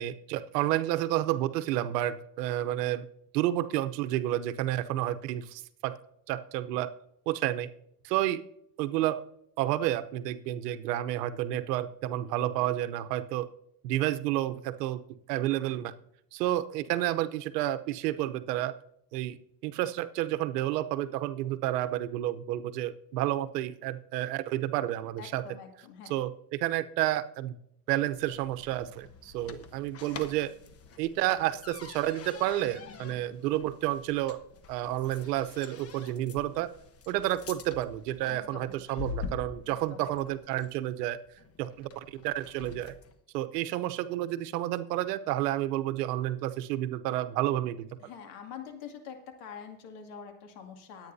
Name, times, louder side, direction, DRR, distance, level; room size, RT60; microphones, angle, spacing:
voice 1, 0.0-3.1 3.3-5.9 6.3-6.9 7.3-7.7 8.0-8.4 8.8-9.2 9.6-13.5 13.8-15.0 15.3-15.9 16.3-18.7 19.1-19.4 19.6-25.4 26.1-27.6 27.9-30.5 31.0-34.4 34.7-36.7 37.1-41.2 41.6-42.9 43.3-47.9, right 14 dB, 75° right, 11 dB, 0.9 m, -30 dB
voice 2, 25.2-26.2 38.3-38.8 39.7-40.1 48.0-51.1, left 7 dB, 65° left, 4 dB, 2.4 m, -45 dB
sound 1, 28.1-43.2, left 5 dB, 30° left, 1.1 m, -46 dB
21.0 x 8.8 x 2.7 m, 0.74 s
supercardioid pair, 110°, 48 cm